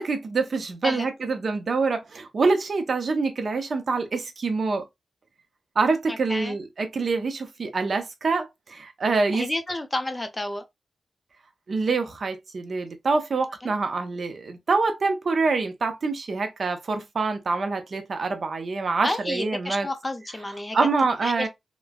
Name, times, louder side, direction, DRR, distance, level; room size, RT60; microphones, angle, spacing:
voice 1, 0.0-4.8 5.8-9.5 11.7-19.9 20.7-21.5, right 4 dB, 55° right, 0.6 m, -25 dB
voice 2, 6.1-6.6 9.3-10.6 13.6-13.7 19.0-20.8 21.2-21.5, left 1 dB, 20° left, 0.5 m, -30 dB
3.1 x 2.1 x 2.2 m
wide cardioid pair, 100°, 0 cm